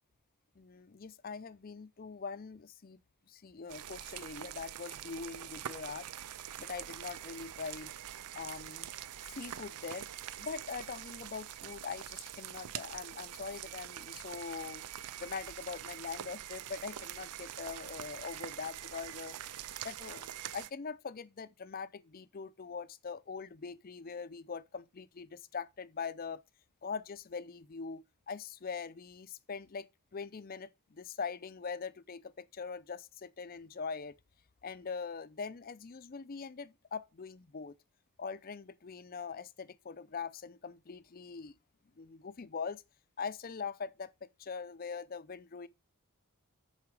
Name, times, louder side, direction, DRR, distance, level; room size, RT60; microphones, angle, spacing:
voice 1, 0.6-3.0 3.3-6.1 6.6-7.9 8.3-8.9 9.3-10.1 10.4-14.8 15.2-19.4 19.8-26.4 26.8-29.9 30.1-34.2 34.6-37.8 38.2-41.6 42.0-42.8 43.2-45.7, left 5 dB, 40° left, 0.5 m, -42 dB
sound 1, 3.7-20.7, right 11 dB, 90° right, 0.5 m, -44 dB
10.5 x 4.7 x 4.8 m
head